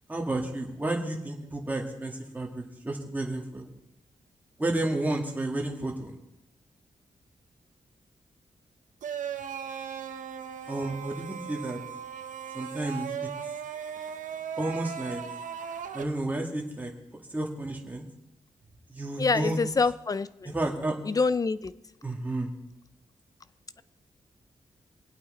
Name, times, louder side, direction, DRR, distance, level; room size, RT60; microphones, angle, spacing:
voice 1, 0.1-3.7 4.6-6.2 10.7-11.8 12.5-13.3 14.6-15.2 15.9-18.0 18.9-19.6 20.4-21.0 22.0-22.5, right 2 dB, 15° right, 0 dB, 2.0 m, -31 dB
sound 1, 9.0-16.0, right 7 dB, 85° right, 1.0 m, -37 dB
voice 2, 19.2-20.3 21.1-21.7, left 4 dB, 30° left, 16 dB, 0.5 m, -25 dB
24.5 x 8.7 x 4.3 m, 0.86 s
wide cardioid pair, 140°, 13 cm